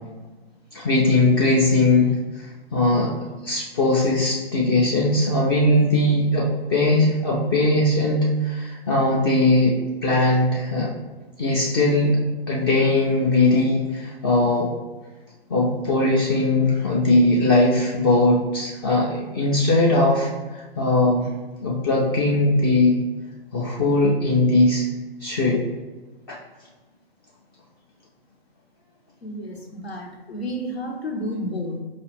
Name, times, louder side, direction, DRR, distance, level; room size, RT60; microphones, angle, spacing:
voice 1, 0.7-2.1 2.3-3.1 3.4-9.7 10.0-10.9 11.4-12.2 12.5-14.7 15.5-21.3 21.6-23.0 23.5-24.8 25.2-25.6 26.3-26.4, left 2 dB, 25° left, -5 dB, 0.4 m, -20 dB
voice 2, 29.2-31.8, equal, 85° left, 1 dB, 0.9 m, -31 dB
5.1 x 2.4 x 3.0 m, 1.2 s
figure-of-eight pair, 125°, 31 cm